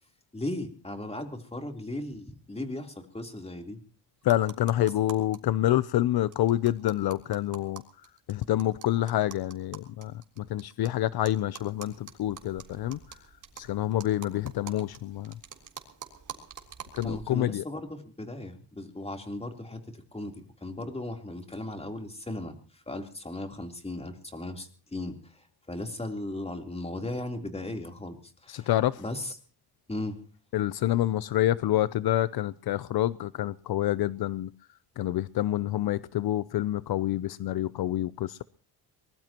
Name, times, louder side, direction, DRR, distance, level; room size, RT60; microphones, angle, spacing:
voice 1, 0.3-3.8 17.0-17.9 18.2-28.2 28.4-28.7 29.0-29.3 29.9-30.2, left 1 dB, 15° left, 4 dB, 3.5 m, -37 dB
voice 2, 4.2-15.4 16.9-17.7 28.5-29.0 30.5-38.4, left 13 dB, 70° left, 17 dB, 0.7 m, -28 dB
sound 1, 4.2-5.4 5.7-5.8 6.0-6.1 6.3-10.9 11.2-17.2, right 7 dB, 50° right, 3.7 m, -46 dB
23.5 x 20.5 x 3.0 m, 0.39 s
cardioid pair, 90°, 39 cm